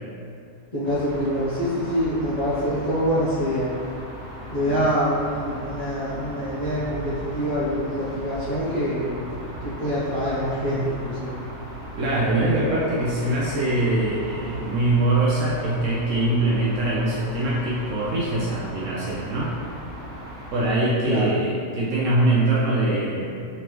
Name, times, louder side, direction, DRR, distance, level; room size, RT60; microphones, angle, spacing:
voice 1, 0.7-3.7 4.5-9.2 9.6-11.4 21.0-21.3, equal, 40° left, -12 dB, 0.6 m, -25 dB
sound 1, 0.8-20.7, equal, 40° right, 1.4 m, -38 dB
voice 2, 12.0-19.5 20.5-23.5, right 2 dB, 65° right, -6 dB, 0.8 m, -23 dB
3.9 x 3.3 x 3.0 m, 2.5 s
omnidirectional pair, 1.7 m